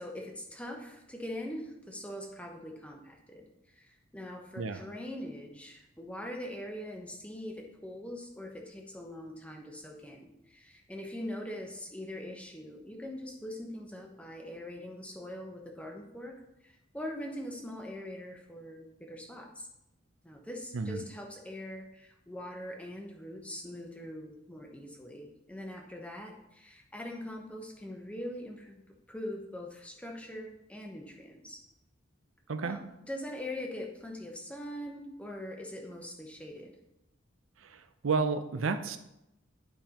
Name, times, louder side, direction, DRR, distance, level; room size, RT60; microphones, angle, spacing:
voice 1, 0.0-19.7 20.2-28.8 29.1-31.6 32.6-32.8 33.1-36.8, left 1 dB, 5° left, 1 dB, 0.9 m, -42 dB
voice 2, 37.6-39.0, right 4 dB, 85° right, 9 dB, 0.5 m, -31 dB
11.0 x 5.3 x 2.9 m, 0.88 s
head